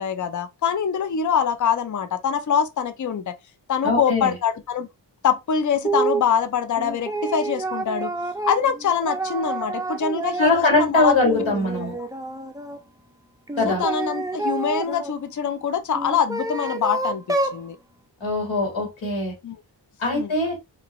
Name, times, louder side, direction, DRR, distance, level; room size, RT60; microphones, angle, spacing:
voice 1, 0.0-3.3 3.7-4.9 5.2-8.1 8.4-11.1 12.0-12.1 13.7-17.8 19.4-19.6 20.1-20.3, left 7 dB, 45° left, 0.5 m, -24 dB
voice 2, 3.8-4.3 10.4-11.9 13.6-13.8 18.2-19.3 20.0-20.6, left 2 dB, 85° left, 1.5 m, -21 dB
sound 1, 5.8-6.3 6.8-10.8 11.2-12.8 13.5-15.1 15.9-17.6, right 2 dB, 10° right, 0.4 m, -28 dB
2.9 x 2.6 x 2.9 m
wide cardioid pair, 60°, 44 cm